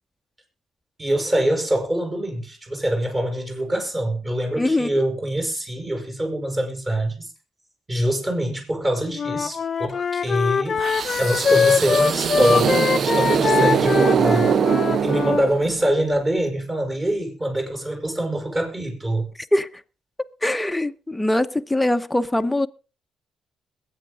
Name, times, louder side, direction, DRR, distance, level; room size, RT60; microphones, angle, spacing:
voice 1, 1.0-7.3 7.9-10.8 11.2-14.7 15.0-19.3, right 1 dB, 25° right, 6.0 m, -24 dB
voice 2, 4.6-5.0 19.5-19.7 20.4-22.7, left 1 dB, 10° left, 1.0 m, -22 dB
Wind instrument woodwind instrument, 9.1-15.4, left 6 dB, 45° left, 0.7 m, -23 dB
sound 1, 10.8-15.9, right 7 dB, 55° right, 0.7 m, -22 dB
22.0 x 8.8 x 3.8 m
cardioid pair, 90°, 0 cm